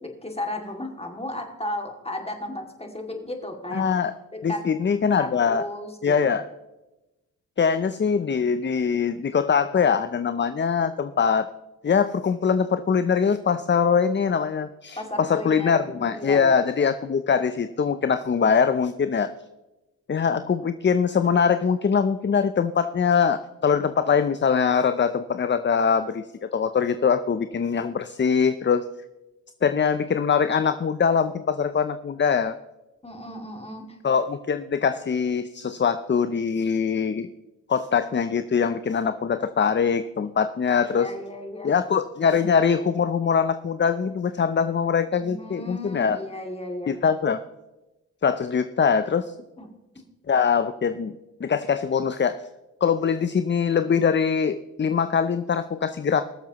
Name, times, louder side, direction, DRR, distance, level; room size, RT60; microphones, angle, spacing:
voice 1, 0.0-4.0 4.3-4.6 5.2-6.2 15.0-16.5 33.0-33.8 40.9-41.7 45.2-46.9 49.6-49.7, left 1 dB, 15° left, 3 dB, 2.3 m, -34 dB
voice 2, 3.7-4.1 4.4-5.6 6.0-6.4 7.6-11.5 11.8-19.3 20.1-28.9 29.6-32.6 34.0-37.3 37.7-41.1 41.6-46.2 46.9-47.4 48.2-49.3 50.3-52.4 52.8-56.2, left 6 dB, 35° left, 11 dB, 0.6 m, -23 dB
21.5 x 7.2 x 3.0 m, 1.0 s
cardioid pair, 55°, 35 cm